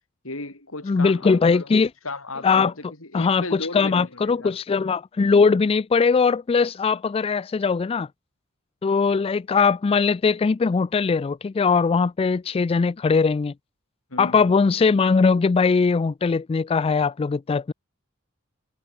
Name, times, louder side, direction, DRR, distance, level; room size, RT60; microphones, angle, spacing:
voice 1, 0.2-1.7 2.0-2.7 3.0-4.6 14.1-14.5, left 2 dB, 75° left, 6.5 m, -35 dB
voice 2, 0.9-1.9 2.4-2.7 3.1-8.1 8.8-13.5 14.2-17.7, left 5 dB, 30° left, 0.3 m, -20 dB
head